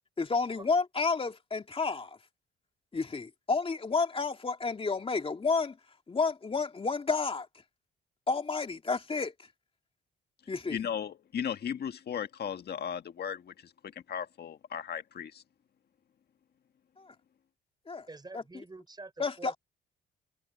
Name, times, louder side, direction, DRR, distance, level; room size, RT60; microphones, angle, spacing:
voice 1, 0.2-2.2 2.9-5.8 6.1-7.5 8.3-9.3 10.5-10.8 17.0-17.1 17.9-18.1 18.3-18.4 19.2-19.5, left 4 dB, 30° left, 2.7 m, -30 dB
voice 2, 10.7-15.4, left 8 dB, 55° left, 1.7 m, -36 dB
voice 3, 18.1-19.6, right 3 dB, 20° right, 4.9 m, -46 dB
cardioid pair, 90°, 20 cm